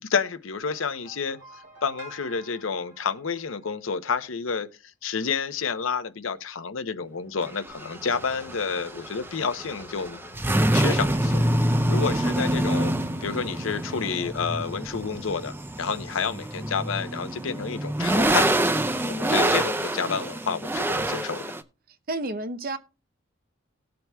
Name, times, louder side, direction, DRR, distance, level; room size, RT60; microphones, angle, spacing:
voice 1, 0.0-4.7 5.0-10.2 10.7-12.9 13.2-18.8 19.0-21.6, left 5 dB, 75° left, 0.7 m, -30 dB
sound 1, 0.6-4.0, right 2 dB, 70° right, 2.7 m, -49 dB
sound 2, 7.4-21.6, right 1 dB, 10° right, 0.5 m, -26 dB
sound 3, 7.7-13.2, left 3 dB, 35° left, 1.4 m, -50 dB
voice 2, 22.1-22.8, right 2 dB, 45° right, 0.7 m, -30 dB
18.5 x 7.6 x 2.3 m
head